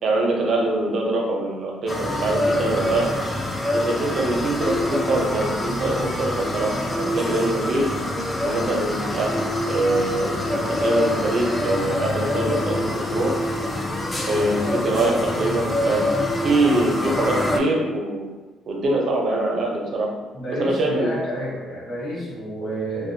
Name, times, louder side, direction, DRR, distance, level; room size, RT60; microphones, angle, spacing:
voice 1, 0.0-3.0 3.7-7.9 8.4-13.3 14.3-16.0 16.4-18.3 18.7-20.1 20.6-21.1, right 2 dB, 55° right, -1 dB, 0.5 m, -23 dB
sound 1, 1.9-17.6, left 1 dB, 20° left, 0.3 m, -25 dB
voice 2, 20.3-23.1, equal, 45° left, -8 dB, 0.9 m, -29 dB
2.5 x 2.1 x 2.6 m, 1.2 s
cardioid pair, 110°, 0 cm